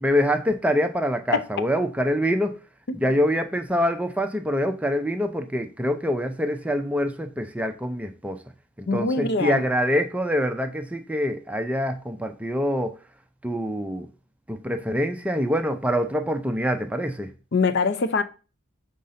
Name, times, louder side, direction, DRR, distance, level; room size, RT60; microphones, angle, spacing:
voice 1, 0.0-2.6 2.9-8.4 8.8-12.9 13.4-14.1 14.5-17.3, equal, 5° right, 0.4 m, -25 dB
voice 2, 8.9-9.6 17.5-18.2, left 4 dB, 50° left, 0.5 m, -23 dB
5.3 x 3.7 x 5.6 m
head